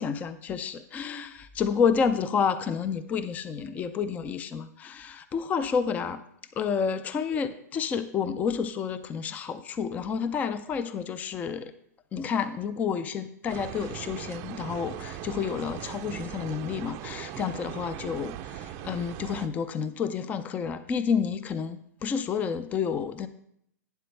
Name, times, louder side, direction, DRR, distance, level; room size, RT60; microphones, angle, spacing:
voice 1, 0.0-6.2 6.6-11.7 12.1-23.3, left 6 dB, 15° left, 13 dB, 0.5 m, -30 dB
sound 1, 13.5-19.5, right 11 dB, 30° right, 0.6 m, -39 dB
12.0 x 9.2 x 3.3 m, 0.70 s
hypercardioid pair, 145°, 9 cm